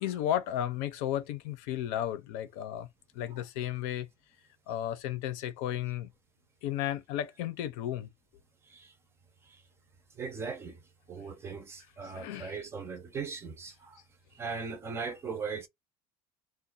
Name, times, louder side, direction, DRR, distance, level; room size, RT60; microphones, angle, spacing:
voice 1, 0.0-2.9 3.1-4.1 4.7-6.1 6.6-8.1 12.0-12.6, left 11 dB, 75° left, 0.7 m, -34 dB
voice 2, 10.2-10.8 11.1-14.0 14.3-15.7, right 5 dB, 20° right, 0.5 m, -39 dB
2.6 x 2.3 x 4.0 m
cardioid pair, 180°, 13 cm